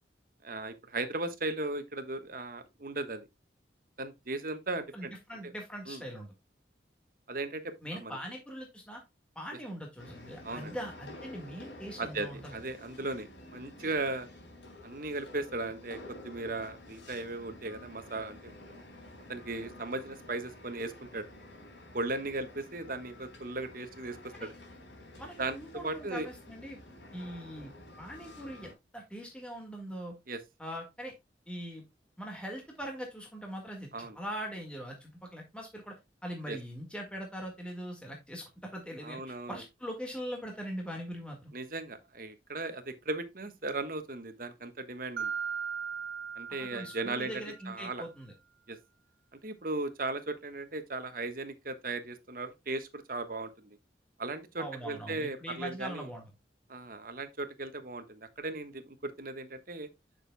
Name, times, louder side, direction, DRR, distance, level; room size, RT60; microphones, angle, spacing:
voice 1, 0.4-3.3 4.0-5.1 5.4-5.5 5.9-6.0 7.3-8.2 10.4-10.7 12.0-14.3 14.8-16.0 16.2-18.8 19.3-21.3 21.9-24.5 25.4-26.3 30.3-30.4 33.9-34.1 36.5-36.6 39.0-39.6 41.5-45.3 46.4-48.1 48.7-48.8 49.4-53.8 54.2-56.1 56.7-59.9, right 2 dB, 50° right, 1.3 m, -37 dB
voice 2, 4.9-6.3 7.8-9.0 9.4-12.6 24.3-24.5 25.2-26.8 27.1-27.7 28.0-30.1 30.6-31.1 31.5-31.8 32.2-41.5 46.6-48.3 54.6-56.2, equal, 5° left, 1.7 m, -41 dB
sound 1, 10.0-28.7, left 1 dB, 85° left, 4.0 m, -50 dB
Mallet percussion, 45.2-47.7, right 6 dB, 80° right, 0.5 m, -38 dB
9.8 x 6.5 x 2.2 m
head